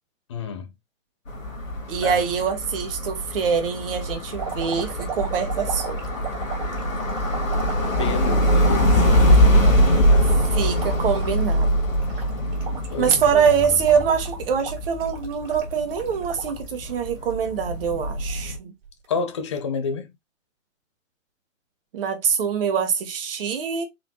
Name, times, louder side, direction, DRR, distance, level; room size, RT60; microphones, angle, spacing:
voice 1, 0.3-0.7 2.0-2.2 7.9-9.2 9.7-10.6 12.9-13.6 19.1-20.1, left 5 dB, 25° left, 0.4 m, -30 dB
sound 1, 1.3-18.6, equal, 75° left, 2.0 m, -23 dB
voice 2, 1.9-6.1 10.5-11.7 13.0-18.7 21.9-23.9, right 7 dB, 45° right, 1.0 m, -24 dB
sound 2, 4.3-16.7 17.2-17.9 18.9-19.1, right 5 dB, 25° right, 1.7 m, -37 dB
4.1 x 3.1 x 2.8 m
figure-of-eight pair, 115°, 40 cm